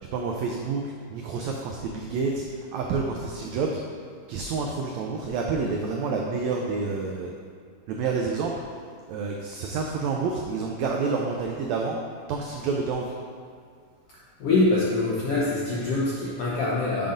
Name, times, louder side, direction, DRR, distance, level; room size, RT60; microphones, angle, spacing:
voice 1, 0.1-3.8 4.3-7.3 7.9-8.6 9.1-12.0 12.3-13.1, right 4 dB, 90° right, 1 dB, 1.5 m, -28 dB
voice 2, 14.4-17.1, left 2 dB, 75° left, -7 dB, 1.4 m, -24 dB
7.1 x 3.8 x 5.1 m, 2.1 s
omnidirectional pair, 3.7 m